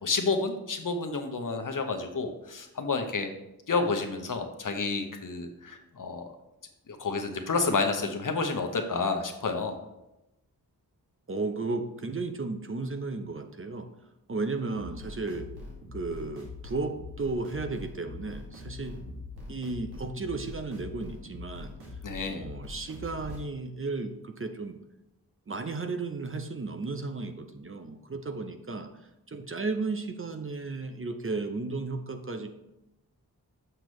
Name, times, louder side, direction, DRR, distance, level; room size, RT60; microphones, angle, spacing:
voice 1, 0.0-3.3 3.7-6.3 6.9-9.8 22.0-22.4, left 4 dB, 55° left, 5 dB, 1.0 m, -30 dB
voice 2, 11.3-13.9 14.3-15.5 15.9-19.0 19.5-21.7 22.3-24.8 25.5-28.9 29.3-32.5, right 3 dB, 35° right, 7 dB, 0.7 m, -34 dB
sound 1, 14.7-23.4, left 3 dB, 80° right, 2.1 m, -43 dB
6.7 x 6.0 x 3.1 m, 0.91 s
cardioid pair, 45°, 38 cm